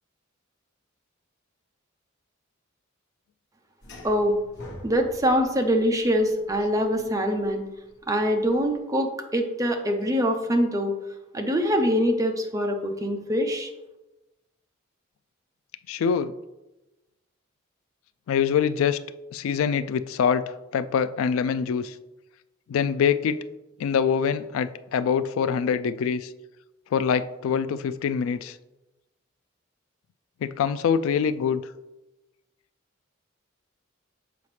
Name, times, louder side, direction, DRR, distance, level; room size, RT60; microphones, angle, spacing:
sound 1, 3.8-8.8, left 1 dB, 60° left, 1.3 m, -46 dB
voice 1, 4.0-4.4 4.8-7.6 8.1-10.9 11.3-13.7, equal, 15° right, 4 dB, 0.7 m, -24 dB
voice 2, 15.9-16.3 18.3-19.0 19.3-20.4 20.7-21.9 22.7-23.4 23.8-26.3 26.9-28.6 30.4-31.6, left 7 dB, 85° left, 14 dB, 0.3 m, -24 dB
7.0 x 4.9 x 3.2 m, 1.0 s
head